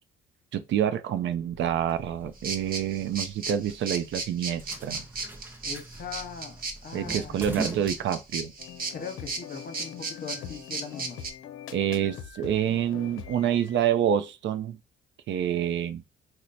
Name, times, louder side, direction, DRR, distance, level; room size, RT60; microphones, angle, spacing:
voice 1, 0.5-5.0 6.9-8.5 11.7-14.8 15.3-16.0, right 10 dB, 70° right, 0.5 m, -27 dB
sound 1, 1.4-8.7, right 2 dB, 10° right, 0.6 m, -42 dB
sound 2, 2.4-11.3, right 4 dB, 45° right, 0.9 m, -35 dB
voice 2, 5.6-7.5 8.9-11.2, left 6 dB, 50° left, 0.9 m, -40 dB
sound 3, 8.6-13.9, left 9 dB, 85° left, 0.5 m, -43 dB
3.1 x 2.1 x 4.0 m
cardioid pair, 90°, 20 cm